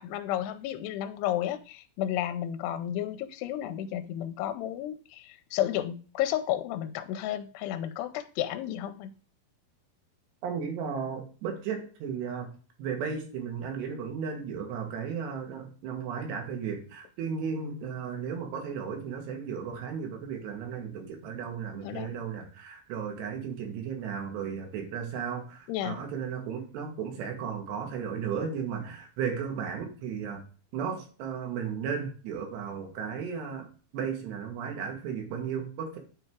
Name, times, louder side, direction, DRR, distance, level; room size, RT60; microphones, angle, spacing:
voice 1, 0.0-9.1 21.8-22.1 25.7-26.0, left 12 dB, 85° left, 2.7 m, -32 dB
voice 2, 10.4-30.4 30.7-36.0, right 6 dB, 85° right, 3.8 m, -35 dB
9.1 x 3.6 x 4.6 m
omnidirectional pair, 4.8 m